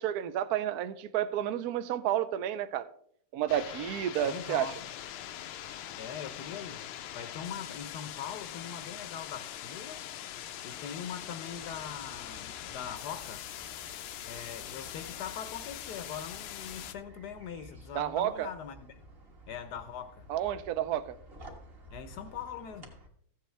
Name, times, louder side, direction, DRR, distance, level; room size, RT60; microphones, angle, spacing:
voice 1, 0.0-2.9 3.3-4.7 17.9-18.5 20.3-21.1, right 11 dB, 75° right, 0.9 m, -31 dB
sound 1, 3.5-16.9, left 11 dB, 85° left, 1.5 m, -42 dB
voice 2, 4.2-4.8 6.0-6.9 7.1-10.1 10.6-13.5 14.2-19.1 19.5-20.3 21.9-22.9, left 8 dB, 65° left, 1.1 m, -42 dB
sound 2, 11.5-23.1, right 1 dB, 30° right, 1.4 m, -53 dB
14.0 x 8.2 x 3.3 m
omnidirectional pair, 2.3 m